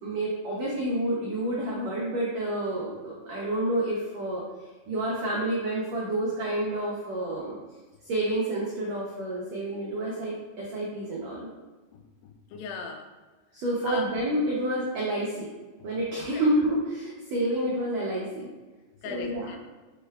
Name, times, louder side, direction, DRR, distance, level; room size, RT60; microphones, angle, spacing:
voice 1, 0.0-4.4 4.9-7.5 8.0-11.5 13.5-15.5 15.8-18.5 19.0-19.6, right 1 dB, 90° right, -5 dB, 1.5 m, -29 dB
voice 2, 11.9-13.1 13.8-14.1 19.0-19.6, left 5 dB, 90° left, 4 dB, 2.4 m, -38 dB
6.2 x 2.3 x 3.3 m, 1.3 s
omnidirectional pair, 4.1 m